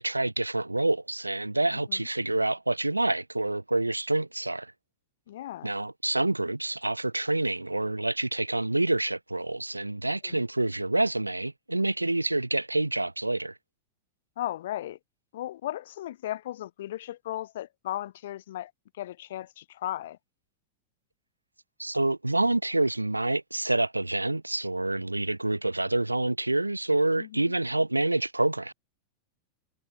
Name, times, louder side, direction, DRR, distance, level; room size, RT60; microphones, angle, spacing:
voice 1, 0.0-4.7 5.6-13.5 21.8-28.7, right 2 dB, 85° right, 0.5 m, -27 dB
voice 2, 5.3-5.7 10.2-10.4 14.4-15.0 15.3-18.7 19.0-20.2 27.2-27.5, left 13 dB, 60° left, 0.5 m, -36 dB
figure-of-eight pair, 90°, 0 cm